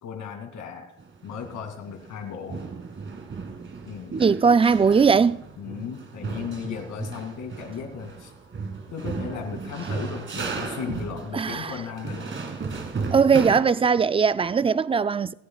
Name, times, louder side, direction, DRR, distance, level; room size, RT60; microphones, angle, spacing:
voice 1, 0.0-0.9 1.2-2.6 3.8-4.2 5.6-8.3 8.9-12.3, left 7 dB, 75° left, 2.6 m, -35 dB
sound 1, 1.0-2.2 2.5-13.6, right 4 dB, 40° right, 2.1 m, -35 dB
voice 2, 4.2-5.4 11.3-11.7 13.1-15.3, right 5 dB, 20° right, 0.4 m, -19 dB
29.0 x 10.0 x 2.4 m
cardioid pair, 90°, 30 cm